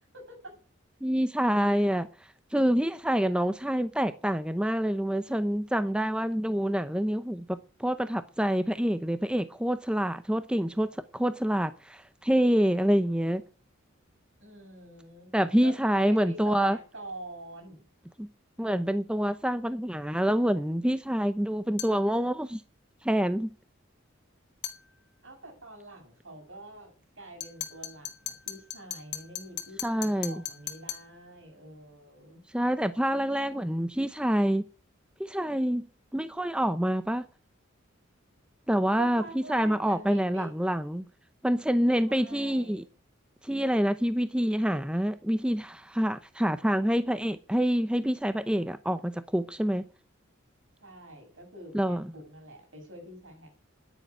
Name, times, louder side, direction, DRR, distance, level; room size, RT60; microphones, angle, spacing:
voice 1, 0.1-0.5 14.4-15.3 15.6-17.9 25.2-32.4 39.0-40.5 42.1-42.9 50.8-53.6, right 1 dB, 70° right, 7.3 m, -46 dB
voice 2, 1.0-2.1 2.5-13.4 15.3-16.8 18.2-18.3 18.6-22.6 23.0-23.5 29.8-30.4 32.5-34.6 35.2-35.9 36.1-37.3 38.7-41.0 41.4-42.8 43.4-49.9 51.7-52.1, equal, 5° right, 0.6 m, -27 dB
sound 1, 21.8-22.0 24.6-24.8 27.4-31.1, left 10 dB, 55° left, 1.6 m, -38 dB
10.0 x 9.7 x 9.9 m
head